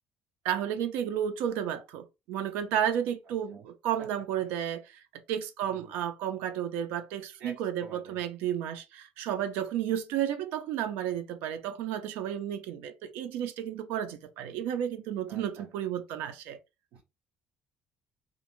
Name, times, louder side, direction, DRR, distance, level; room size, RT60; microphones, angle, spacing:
voice 1, 0.4-16.6, right 10 dB, 90° right, 0.4 m, -32 dB
voice 2, 7.8-8.3 15.3-15.7 16.9-17.0, right 4 dB, 60° right, 0.8 m, -48 dB
2.5 x 2.0 x 2.9 m
cardioid pair, 175°, 3 cm